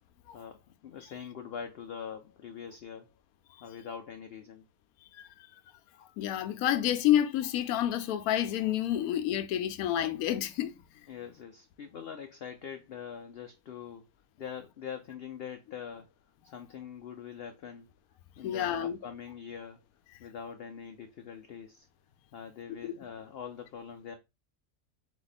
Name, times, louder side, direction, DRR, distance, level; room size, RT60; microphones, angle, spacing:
voice 1, 0.3-3.1 3.6-4.6 11.1-14.1 14.4-16.1 16.4-17.9 18.4-19.8 20.2-21.9 22.3-24.2, left 7 dB, 65° left, 0.6 m, -43 dB
voice 2, 6.2-10.7 18.4-19.0 22.8-22.9, left 11 dB, 85° left, 1.1 m, -29 dB
4.0 x 2.9 x 3.9 m
omnidirectional pair, 1.5 m